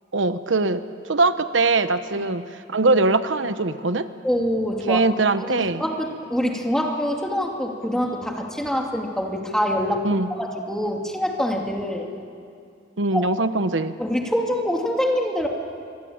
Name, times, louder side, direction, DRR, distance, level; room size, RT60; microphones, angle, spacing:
voice 1, 0.1-2.4 2.7-4.1 4.9-5.8 10.0-10.3 13.0-13.9, right 3 dB, 90° right, 11 dB, 1.0 m, -21 dB
voice 2, 4.2-5.0 5.4-12.1 13.1-13.2 14.0-15.5, equal, 5° left, 1 dB, 2.7 m, -25 dB
26.0 x 23.5 x 8.8 m, 2.3 s
head